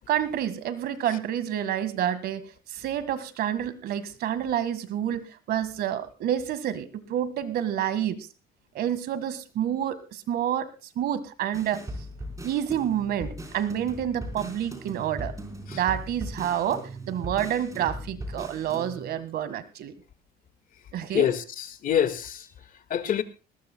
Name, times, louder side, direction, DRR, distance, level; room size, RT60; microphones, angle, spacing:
voice 1, 0.1-8.2 8.7-10.7 11.0-11.8 12.4-15.3 15.7-19.9 20.9-21.3, right 10 dB, 70° right, 1.7 m, -28 dB
sound 1, 11.5-19.2, right 1 dB, 20° right, 4.5 m, -39 dB
voice 2, 21.1-22.4 22.9-23.2, left 9 dB, 55° left, 1.8 m, -25 dB
20.5 x 19.0 x 2.2 m
cardioid pair, 110°, 17 cm